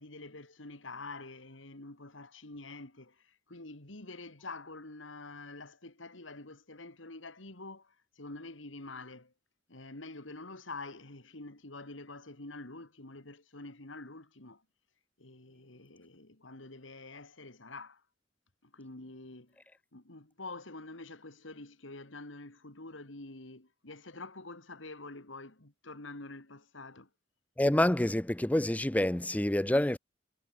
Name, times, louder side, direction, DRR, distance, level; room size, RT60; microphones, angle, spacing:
voice 1, 0.0-9.3 9.7-14.6 15.2-18.0 18.6-19.6 19.9-27.1, left 2 dB, 80° left, 3.0 m, -47 dB
voice 2, 27.6-30.0, left 1 dB, 10° left, 0.5 m, -27 dB
head